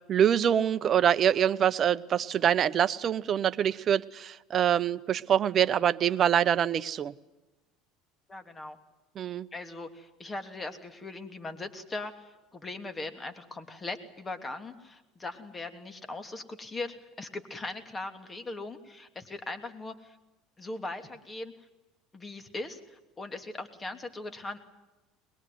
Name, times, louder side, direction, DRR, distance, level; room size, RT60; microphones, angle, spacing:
voice 1, 0.1-7.1 9.2-9.5, right 9 dB, 45° right, 13 dB, 1.0 m, -25 dB
voice 2, 8.3-8.8 9.5-20.2 20.6-21.5 22.1-24.6, left 2 dB, 25° left, 8 dB, 3.0 m, -39 dB
22.0 x 22.0 x 9.4 m, 1.1 s
hypercardioid pair, 80°, 0 cm